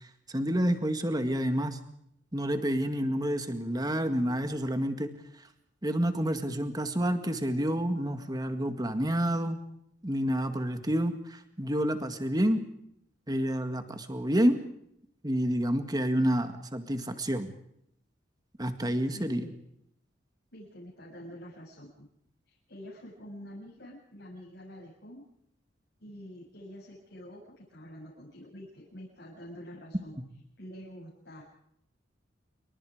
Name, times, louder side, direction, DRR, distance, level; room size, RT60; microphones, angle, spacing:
voice 1, 0.3-1.8 2.3-5.1 5.8-9.6 10.0-12.6 13.3-14.6 15.2-17.5 18.6-19.4, equal, 20° right, 7 dB, 2.0 m, -29 dB
voice 2, 19.1-19.5 20.5-22.1 22.5-25.2 26.0-30.1 30.6-31.4, equal, 60° left, -4 dB, 7.4 m, -47 dB
28.0 x 23.5 x 5.0 m, 0.74 s
head